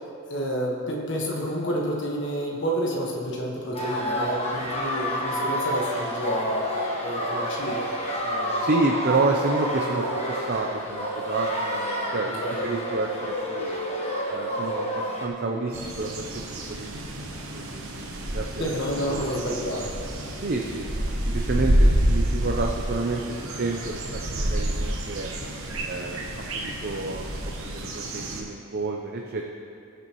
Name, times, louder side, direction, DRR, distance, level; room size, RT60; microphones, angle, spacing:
voice 1, 0.3-7.9 8.2-8.6 12.4-12.7 18.6-19.9, equal, 50° left, -2 dB, 1.4 m, -29 dB
sound 1, 3.7-15.3, equal, 25° left, 1.3 m, -29 dB
voice 2, 8.6-13.8 14.3-18.8 19.1-19.4 20.4-23.2 23.6-24.0 24.3-25.3 25.8-29.4, right 2 dB, 45° right, 1 dB, 0.6 m, -30 dB
sound 2, 15.7-28.4, right 1 dB, 65° right, 1.2 m, -28 dB
20.0 x 6.9 x 3.1 m, 2.6 s
head